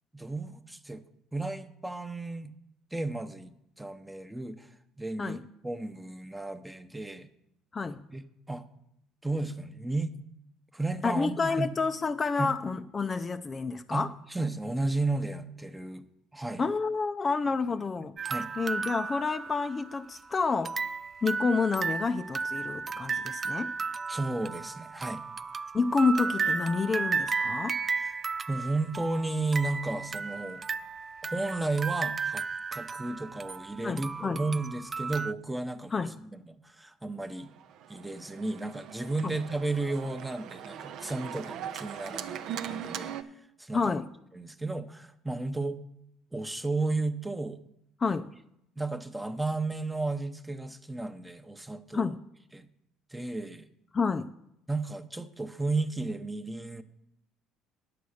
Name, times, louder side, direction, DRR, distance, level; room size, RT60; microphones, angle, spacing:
voice 1, 0.1-1.0 1.3-2.5 2.9-4.7 5.0-7.3 8.1-8.6 9.2-10.2 10.7-11.7 12.4-12.5 13.9-14.0 14.3-16.0 16.3-16.6 18.2-18.5 24.1-25.2 27.9-28.1 28.5-30.6 31.2-32.4 32.7-35.9 36.2-37.5 37.9-43.1 43.6-44.0 44.3-45.8 46.3-47.6 48.8-52.1 52.5-52.7 53.1-53.7 54.7-56.8, right 2 dB, 10° right, 10 dB, 0.8 m, -33 dB
voice 2, 7.7-8.1 11.0-14.1 16.6-18.1 18.6-20.9 21.2-23.7 25.7-27.8 33.8-34.4 35.9-36.2 39.2-39.3 43.7-44.1 48.0-48.3 51.9-52.2 53.9-54.3, left 4 dB, 30° left, 8 dB, 0.4 m, -29 dB
sound 1, 18.2-20.2 20.6-35.3, right 5 dB, 30° right, 0.3 m, -34 dB
Organ, 37.4-43.2, right 9 dB, 65° right, 0.7 m, -40 dB
9.4 x 6.9 x 6.4 m, 0.78 s
supercardioid pair, 90°, 0 cm